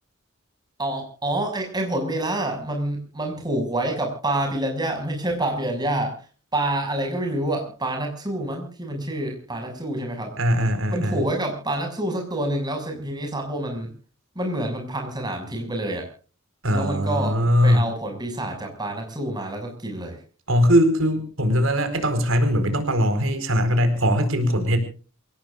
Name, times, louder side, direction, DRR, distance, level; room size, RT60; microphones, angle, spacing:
voice 1, 0.8-6.2 6.5-10.4 10.9-13.9 14.3-16.1 16.7-20.2, right 1 dB, 20° right, 3 dB, 6.3 m, -27 dB
voice 2, 10.4-11.2 16.6-17.8 20.5-24.8, equal, 85° right, 8 dB, 4.3 m, -20 dB
28.0 x 17.5 x 2.5 m, 0.38 s
head